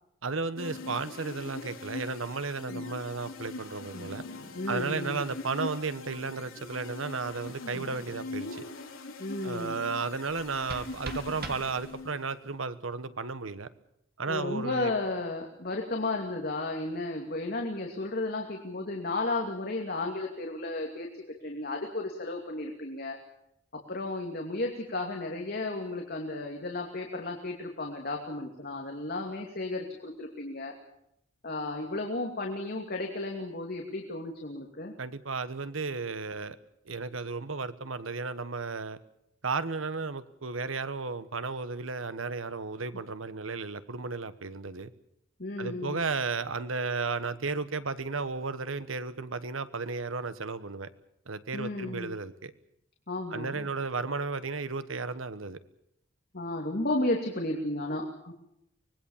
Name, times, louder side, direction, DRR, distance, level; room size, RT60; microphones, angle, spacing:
voice 1, 0.2-4.2 4.7-8.6 9.4-13.7 14.2-14.9 35.0-36.6 36.8-39.0 39.4-44.9 45.6-50.9 51.3-52.5 53.3-55.6, right 4 dB, 75° right, 13 dB, 1.2 m, -34 dB
sound 1, 0.6-12.3, left 3 dB, 80° left, 3.6 m, -42 dB
voice 2, 4.5-5.2 7.7-7.8 9.2-9.8 14.3-23.2 23.7-30.7 31.4-34.9 45.4-46.0 51.5-52.1 53.1-53.7 56.3-58.3, left 2 dB, 50° left, 2 dB, 2.7 m, -33 dB
sound 2, 10.3-12.3, right 3 dB, 50° right, 2.6 m, -42 dB
25.0 x 20.5 x 7.3 m, 0.77 s
head